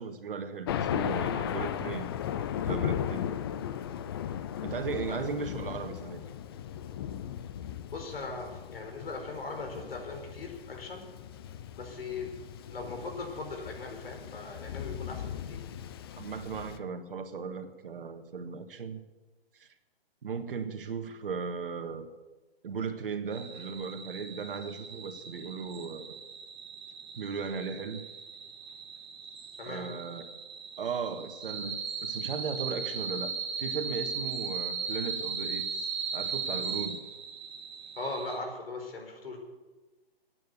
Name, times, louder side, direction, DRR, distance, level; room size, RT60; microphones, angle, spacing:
voice 1, 0.0-2.1 2.6-3.2 4.6-6.2 16.2-19.0 19.5-19.7 20.2-22.1 22.6-26.1 27.1-28.0 29.7-30.3 30.8-37.1, right 5 dB, 60° right, 8 dB, 1.7 m, -37 dB
Thunder, 0.7-16.8, left 9 dB, 25° left, 0.5 m, -37 dB
voice 2, 7.9-11.0 11.8-12.3 12.7-15.7 29.6-29.9 38.0-39.4, left 3 dB, 70° left, 3 dB, 4.7 m, -39 dB
sound 1, 23.3-38.4, right 6 dB, 20° right, 1.7 m, -38 dB
15.5 x 9.4 x 8.2 m, 1.2 s
figure-of-eight pair, 135°, 30 cm